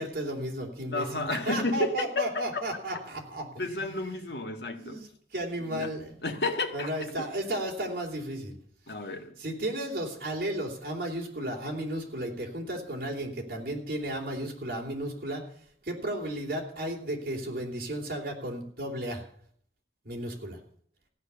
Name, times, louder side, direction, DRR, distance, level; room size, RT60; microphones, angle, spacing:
voice 1, 0.0-4.0 4.6-6.4 6.7-8.6 8.9-9.0 9.4-15.5 15.8-19.2 20.0-20.6, right 1 dB, 55° right, 3.1 m, -34 dB
voice 2, 0.9-2.6 3.6-5.0 5.7-5.9 6.2-6.9 8.9-9.4, left 2 dB, 75° left, 1.8 m, -31 dB
15.0 x 9.5 x 6.9 m
head